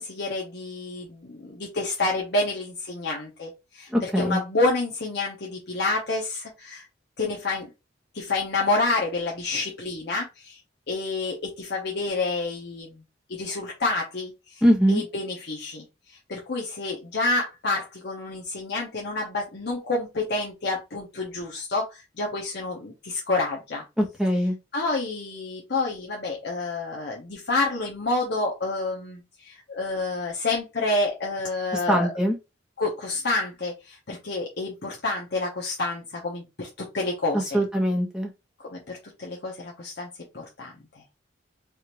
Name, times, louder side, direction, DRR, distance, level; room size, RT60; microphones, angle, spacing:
voice 1, 0.0-6.9 7.2-7.7 8.1-10.6 10.9-13.0 13.3-14.6 14.9-15.8 16.3-23.8 24.7-32.1 32.8-36.7 36.9-37.6 38.6-40.1 40.3-40.7, left 2 dB, 60° left, -2 dB, 0.9 m, -28 dB
voice 2, 3.9-4.4 14.6-15.0 24.0-24.5 31.9-32.3 37.5-38.3, equal, 5° right, 1 dB, 1.0 m, -22 dB
4.9 x 2.6 x 2.9 m, 0.25 s
head